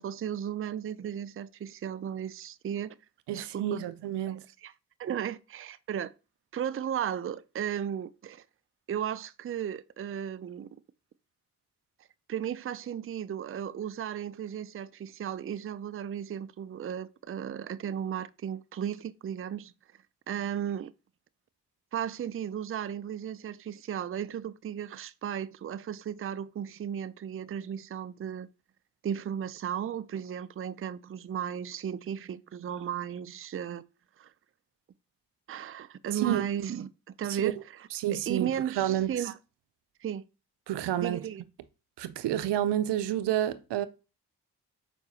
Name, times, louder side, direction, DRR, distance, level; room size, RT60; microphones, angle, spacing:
voice 1, 0.0-3.0 3.3-3.8 4.3-4.7 5.0-6.1 6.5-8.4 8.9-10.7 12.3-19.7 20.3-20.9 21.9-28.5 29.0-33.8 34.2-34.3 35.5-37.6 38.1-39.4 40.0-40.2 41.0-41.4, right 9 dB, 35° right, 0.5 m, -35 dB
voice 2, 3.3-4.5 36.1-36.4 37.3-37.5 37.9-39.3 40.7-41.2 42.0-43.9, right 12 dB, 80° right, 0.6 m, -29 dB
6.8 x 4.9 x 2.8 m
supercardioid pair, 45°, 41 cm